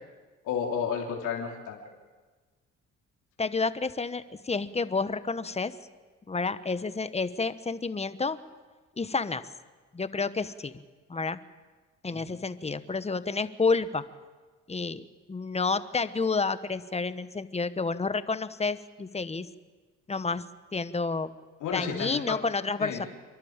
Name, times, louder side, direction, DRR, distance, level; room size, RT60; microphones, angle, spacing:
voice 1, 0.4-1.8 12.1-12.2 21.6-22.4 22.8-23.0, left 7 dB, 90° left, -1 dB, 3.3 m, -32 dB
voice 2, 3.4-5.7 6.3-8.4 9.0-9.5 9.9-10.7 11.1-11.4 12.0-14.0 14.7-19.5 20.1-20.4 20.7-21.3 21.7-23.0, left 4 dB, 20° left, 13 dB, 1.0 m, -30 dB
28.0 x 11.5 x 8.8 m, 1.3 s
cardioid pair, 90°, 30 cm